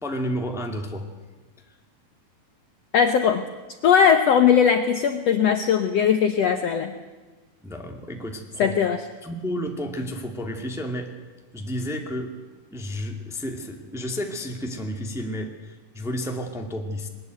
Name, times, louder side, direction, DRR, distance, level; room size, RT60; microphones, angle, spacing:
voice 1, 0.0-1.1 7.6-8.7 9.2-11.1 11.5-12.3 12.7-17.1, equal, ahead, 3 dB, 1.2 m, -31 dB
voice 2, 2.9-3.4 3.8-6.9 8.6-9.0, left 7 dB, 80° left, 7 dB, 1.4 m, -19 dB
21.5 x 20.0 x 9.4 m, 1.3 s
omnidirectional pair, 4.4 m